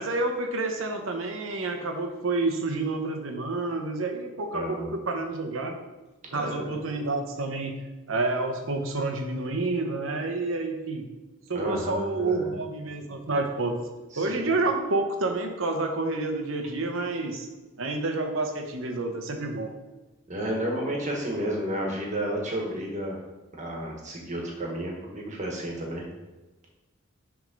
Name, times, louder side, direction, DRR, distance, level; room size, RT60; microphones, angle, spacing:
voice 1, 0.0-5.8 6.3-7.8 8.1-11.1 11.5-13.8 14.2-17.5 17.8-19.7, right 2 dB, 70° right, 4 dB, 0.9 m, -29 dB
voice 2, 4.5-4.9 6.3-6.7 11.5-12.5 14.1-14.5 20.3-23.2 23.6-26.0, right 1 dB, 35° right, -1 dB, 1.4 m, -31 dB
6.2 x 3.6 x 5.2 m, 1.2 s
head